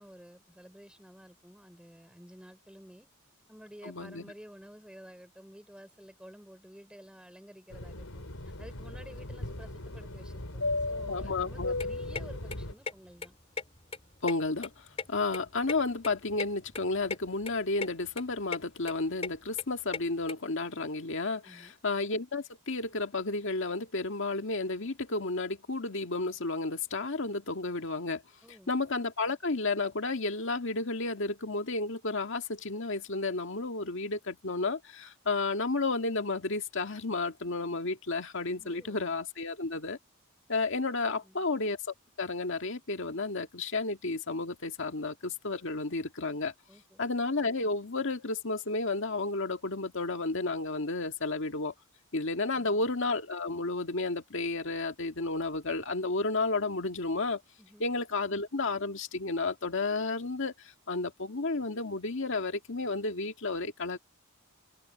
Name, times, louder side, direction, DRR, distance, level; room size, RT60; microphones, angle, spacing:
voice 1, 0.0-3.1 3.5-13.4 21.4-21.8 28.4-28.7 38.6-39.0 41.2-41.5 46.7-47.0 52.5-52.8 57.6-57.9, equal, 5° right, 4.0 m, -52 dB
voice 2, 3.8-4.3 11.0-11.7 14.2-28.2 28.7-40.0 40.5-41.8 42.2-46.5 47.0-51.7 52.1-57.4 57.8-64.0, left 3 dB, 60° left, 1.9 m, -32 dB
Fixed-wing aircraft airplane, 7.7-12.7, left 2 dB, 85° left, 3.7 m, -36 dB
sound 1, 11.5-20.3, left 5 dB, 30° left, 3.1 m, -40 dB
head